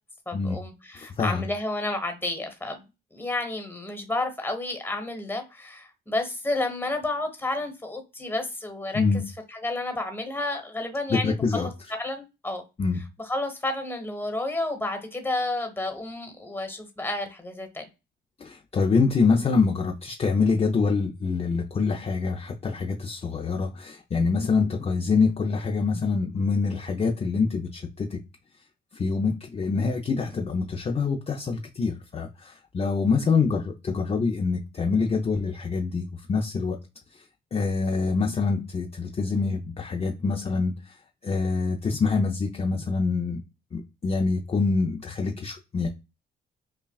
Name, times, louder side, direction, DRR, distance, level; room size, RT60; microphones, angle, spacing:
voice 1, 0.3-2.8 3.1-9.0 9.5-11.7 12.0-12.6 13.2-17.9, left 2 dB, 10° left, 1.2 m, -31 dB
voice 2, 0.9-1.4 8.9-9.2 11.1-11.7 12.8-13.0 18.4-28.2 28.9-36.8 37.1-37.2 37.5-43.4 43.7-45.9, left 4 dB, 30° left, 0.6 m, -25 dB
5.5 x 2.3 x 2.3 m
cardioid pair, 90°, 20 cm